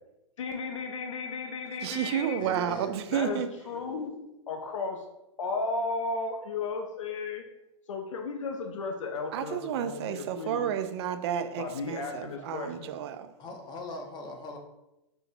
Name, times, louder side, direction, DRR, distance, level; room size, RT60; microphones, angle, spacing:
voice 1, 0.4-2.5 3.1-4.2 4.5-5.0 5.4-7.4 7.9-10.7 11.6-12.9, left 4 dB, 80° left, 0.5 m, -34 dB
voice 2, 1.8-3.5 9.3-13.3, right 9 dB, 55° right, 0.4 m, -31 dB
voice 3, 2.4-3.0 13.4-14.6, left 2 dB, 30° left, 0.6 m, -40 dB
5.5 x 2.9 x 2.6 m
hypercardioid pair, 105°, 16 cm